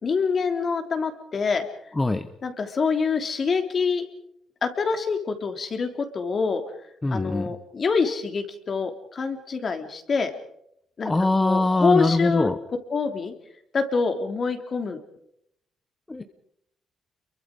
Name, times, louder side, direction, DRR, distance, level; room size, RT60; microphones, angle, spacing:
voice 1, 0.0-1.7 2.4-4.0 4.6-6.6 7.1-10.3 11.0-11.1 11.4-12.5 12.9-13.3 13.7-15.0, left 5 dB, 45° left, 6 dB, 3.2 m, -25 dB
voice 2, 1.9-2.3 7.0-7.5 11.0-12.6 16.1-16.2, left 2 dB, 15° left, 9 dB, 1.2 m, -22 dB
29.0 x 23.5 x 5.0 m, 0.74 s
cardioid pair, 90°, 0 cm